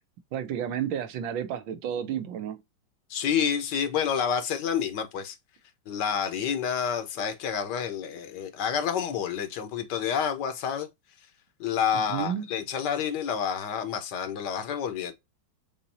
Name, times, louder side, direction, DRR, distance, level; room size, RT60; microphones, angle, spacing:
voice 1, 0.3-2.6 11.9-12.5, right 9 dB, 80° right, 1.5 m, -31 dB
voice 2, 3.1-5.4 5.9-10.9 11.6-15.1, left 7 dB, 70° left, 1.3 m, -29 dB
6.9 x 2.7 x 2.7 m
omnidirectional pair, 2.1 m